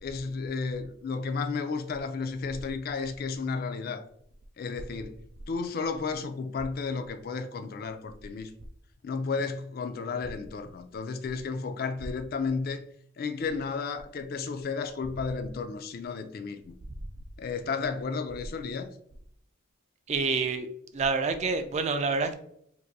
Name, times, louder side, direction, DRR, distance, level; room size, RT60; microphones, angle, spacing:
voice 1, 0.0-4.0 4.6-5.2 5.5-8.5 9.0-12.8 13.2-16.7 17.4-18.9, left 4 dB, 45° left, 0.3 m, -33 dB
voice 2, 20.1-20.7 20.9-22.3, right 4 dB, 30° right, 0.3 m, -27 dB
2.6 x 2.5 x 4.0 m
head